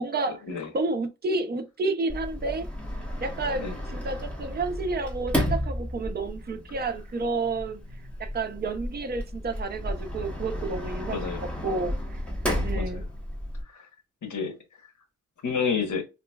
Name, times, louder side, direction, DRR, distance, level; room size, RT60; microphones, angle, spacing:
voice 1, 0.0-0.4 0.7-2.7 3.2-7.8 8.2-11.2 11.6-12.2 12.6-13.0, right 3 dB, 35° right, 0.5 m, -30 dB
Sliding door, 2.1-13.6, equal, 5° left, 1.1 m, -33 dB
voice 2, 11.1-11.4 12.7-13.0 13.7-13.9 14.2-14.6 15.4-16.0, left 6 dB, 80° left, 1.1 m, -29 dB
4.3 x 2.9 x 2.2 m
wide cardioid pair, 155°, 30 cm